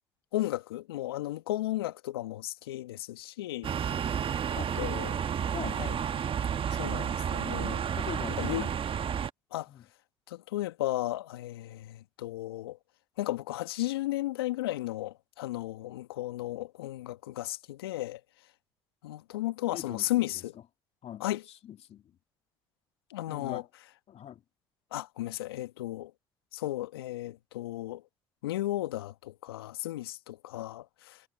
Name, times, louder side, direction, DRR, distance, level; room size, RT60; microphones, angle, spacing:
voice 1, 0.3-3.7 4.1-4.2 4.8-5.2 5.8-6.0 6.7-7.8 8.4-8.6 9.5-9.7 10.3-12.8 13.2-18.2 19.0-20.5 21.2-21.4 23.1-23.6 24.9-26.1 26.5-28.0 28.4-31.2, left 16 dB, 85° left, 2.0 m, -34 dB
sound 1, 3.6-9.3, right 8 dB, 45° right, 1.5 m, -31 dB
voice 2, 5.5-5.8 7.9-8.7 9.7-9.8 19.7-20.4 21.0-21.2 21.6-22.2 23.3-23.7 24.1-24.4, left 10 dB, 55° left, 2.8 m, -42 dB
hypercardioid pair, 50°, 13 cm